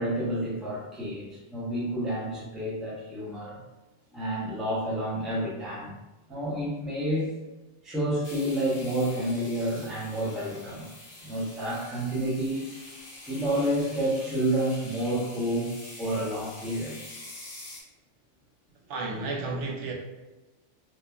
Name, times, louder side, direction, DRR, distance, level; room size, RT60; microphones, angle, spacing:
voice 1, 0.0-3.6 4.1-5.9 6.3-7.3 7.8-10.9 11.2-12.6 13.3-17.1, right 1 dB, ahead, -6 dB, 0.4 m, -29 dB
sound 1, 8.2-17.8, left 2 dB, 45° left, 0.6 m, -46 dB
voice 2, 18.9-19.9, right 3 dB, 80° right, -1 dB, 0.9 m, -32 dB
2.9 x 2.2 x 2.3 m, 1.1 s
omnidirectional pair, 1.2 m